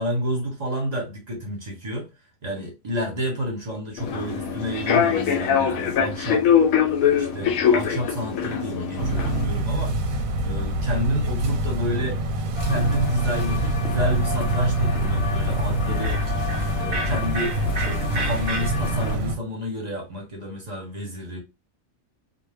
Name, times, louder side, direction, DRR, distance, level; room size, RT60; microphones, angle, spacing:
voice 1, 0.0-2.1 2.4-6.5 7.0-10.0 10.4-12.3 12.6-16.2 16.8-21.4, equal, 40° right, 0.7 m, -29 dB
Human voice / Subway metro underground, 4.0-9.4, left 8 dB, 85° left, 1.0 m, -22 dB
sound 1, 9.0-19.4, right 1 dB, 90° right, 1.0 m, -25 dB
sound 2, 12.6-19.2, left 2 dB, 65° left, 0.8 m, -31 dB
2.3 x 2.1 x 3.3 m
omnidirectional pair, 1.4 m